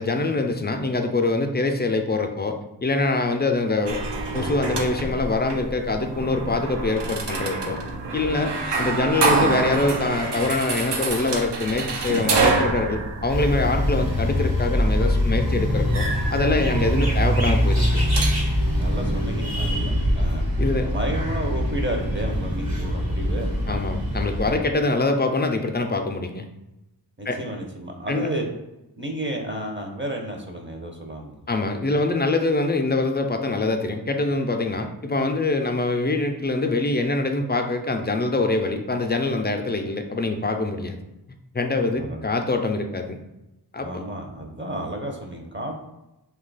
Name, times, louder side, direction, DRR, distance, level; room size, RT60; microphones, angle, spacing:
voice 1, 0.0-4.0 4.3-7.8 8.1-16.1 16.3-18.1 20.6-20.9 23.7-26.5 27.3-27.4 28.1-28.3 31.5-41.0 41.5-43.2 43.7-44.0, left 2 dB, 25° left, 5 dB, 0.4 m, -24 dB
sound 1, 3.9-18.4, right 3 dB, 85° right, 0.6 m, -27 dB
sound 2, 13.3-24.5, equal, 60° right, 1.1 m, -23 dB
voice 2, 18.8-20.4 20.8-23.5 27.2-28.5 29.0-31.5 41.9-42.2 43.8-45.8, right 1 dB, 30° right, 2 dB, 0.6 m, -32 dB
2.8 x 2.3 x 3.9 m, 0.93 s
wide cardioid pair, 40°, 40 cm